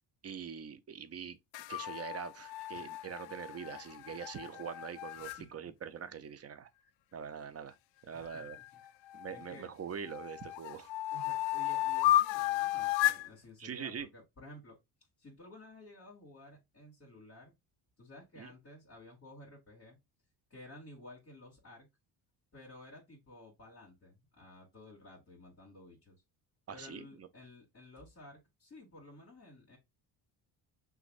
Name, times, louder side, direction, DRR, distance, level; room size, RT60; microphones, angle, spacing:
voice 1, 0.2-1.4 1.7-6.7 7.1-7.8 8.0-8.6 9.1-10.9 13.6-14.1 18.4-18.5 26.7-27.3, right 7 dB, 35° right, 0.7 m, -43 dB
sound 1, 1.5-5.4 8.3-9.6 10.1-13.3, left 15 dB, 85° left, 0.5 m, -33 dB
voice 2, 8.1-8.6 9.3-9.7 11.1-14.8 15.2-17.5 18.0-20.0 20.5-21.9 22.5-26.2 26.7-29.8, left 1 dB, 30° left, 2.8 m, -54 dB
6.2 x 2.5 x 2.5 m
cardioid pair, 100°, 44 cm